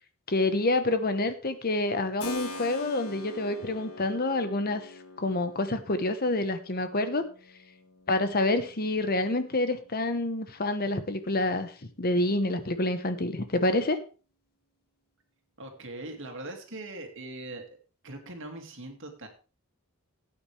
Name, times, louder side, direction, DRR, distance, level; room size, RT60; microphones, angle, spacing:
voice 1, 0.3-4.9 5.2-7.2 8.1-11.7 12.0-14.0, left 2 dB, 45° left, 10 dB, 1.1 m, -27 dB
Keyboard (musical), 2.2-10.8, left 2 dB, 80° left, 1.7 m, -45 dB
voice 2, 15.6-17.7 18.0-19.3, right 2 dB, 60° right, 4 dB, 2.4 m, -41 dB
16.5 x 8.8 x 3.4 m, 0.35 s
head